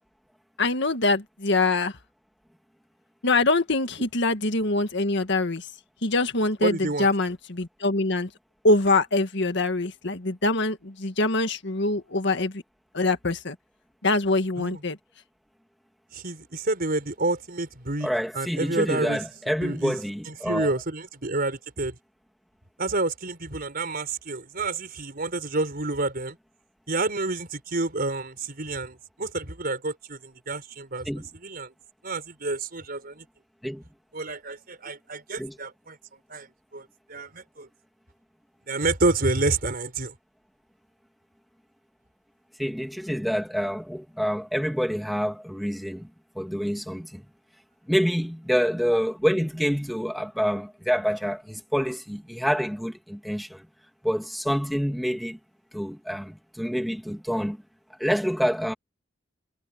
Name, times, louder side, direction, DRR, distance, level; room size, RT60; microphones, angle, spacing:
voice 1, 0.6-1.9 3.2-5.6 6.0-8.3 8.6-12.6 12.9-13.6 14.0-15.0, left 2 dB, 65° left, 1.9 m, -24 dB
voice 2, 6.6-7.1 14.6-14.8 16.1-18.1 18.3-19.2 19.6-20.0 20.3-21.9 22.8-26.4 26.9-31.1 31.4-31.7 32.0-33.2 34.1-36.0 36.3-36.5 36.7-37.7 38.7-40.1, right 2 dB, 50° right, 4.9 m, -29 dB
voice 3, 18.0-20.7 31.0-31.3 33.6-33.8 35.4-35.6 42.6-46.1 46.3-47.3 47.9-53.7 54.0-55.4 55.7-57.6 58.0-58.7, equal, ahead, 2.8 m, -27 dB
head